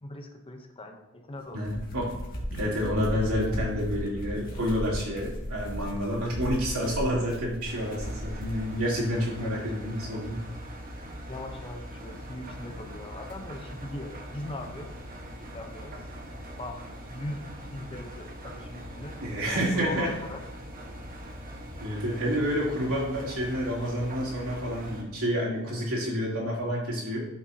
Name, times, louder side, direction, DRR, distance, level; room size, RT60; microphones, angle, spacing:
voice 1, 0.0-1.6 9.1-9.9 11.3-14.9 15.4-16.0 16.6-16.8 17.1-19.2 19.5-20.4 25.5-25.8, left 1 dB, 25° left, 4 dB, 0.8 m, -40 dB
sound 1, 1.5-8.6, equal, 45° left, 2.0 m, -36 dB
voice 2, 1.5-2.1 2.5-10.4 19.2-20.1 21.8-27.3, equal, 75° right, -5 dB, 3.1 m, -29 dB
Engine, 7.6-25.0, equal, 40° right, 1.4 m, -42 dB
13.0 x 5.9 x 2.8 m, 0.96 s
head